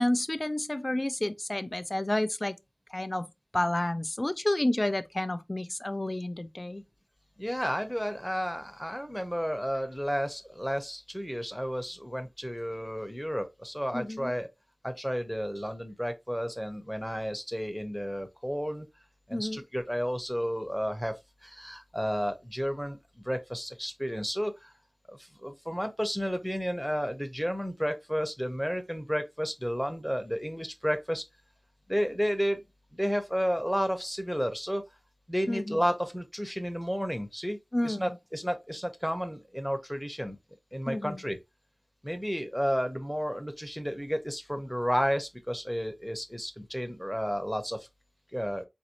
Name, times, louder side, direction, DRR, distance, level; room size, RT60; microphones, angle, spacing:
voice 1, 0.0-2.5 2.9-3.3 3.5-6.8 13.9-14.3 19.3-19.6 35.5-35.8 37.7-38.1 40.9-41.2, left 1 dB, 35° left, 0.4 m, -30 dB
voice 2, 7.4-14.5 14.8-18.9 19.3-21.1 21.4-24.7 25.1-31.2 31.9-32.6 32.9-34.8 35.3-37.6 37.8-40.4 40.7-41.4 42.0-47.9 48.3-48.6, equal, ahead, 0.8 m, -32 dB
4.0 x 2.6 x 2.9 m
wide cardioid pair, 55°, 0 cm